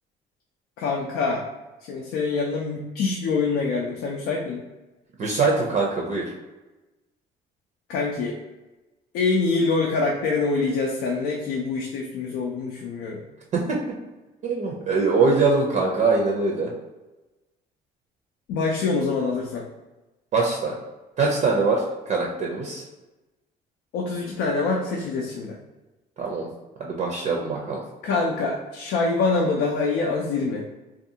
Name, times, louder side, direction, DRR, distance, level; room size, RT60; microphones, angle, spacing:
voice 1, 0.8-1.4 1.9-4.6 7.9-8.4 9.1-13.2 18.5-19.7 23.9-25.6 28.0-30.6, left 4 dB, 80° left, -1 dB, 0.4 m, -25 dB
voice 2, 5.2-6.3 13.5-13.8 14.4-16.7 20.3-20.7 21.2-22.8 26.2-26.5 26.8-27.8, right 4 dB, 45° right, -1 dB, 0.5 m, -23 dB
2.6 x 2.3 x 2.7 m, 1.1 s
cardioid pair, 110°, 17 cm